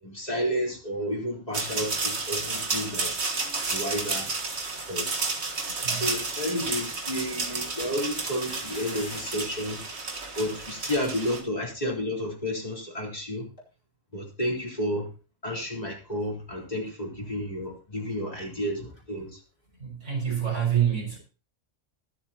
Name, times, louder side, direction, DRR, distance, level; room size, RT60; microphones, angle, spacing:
voice 1, 0.0-3.1 3.7-4.3 4.9-5.2 6.0-9.8 10.4-13.5 14.1-15.1 15.4-19.4, equal, 30° left, -3 dB, 4.2 m, -31 dB
sound 1, 1.5-11.4, right 3 dB, 60° right, 1.9 m, -31 dB
voice 2, 5.8-6.1 19.8-21.2, right 9 dB, 75° right, -1 dB, 6.7 m, -27 dB
sound 2, 6.7-6.8 7.9-9.7 10.0-10.1 10.2-10.5 11.1-11.2 11.4-11.5 13.6-13.7, left 2 dB, 80° left, 3.2 m, -45 dB
22.0 x 7.8 x 2.9 m, 0.35 s
omnidirectional pair, 1.3 m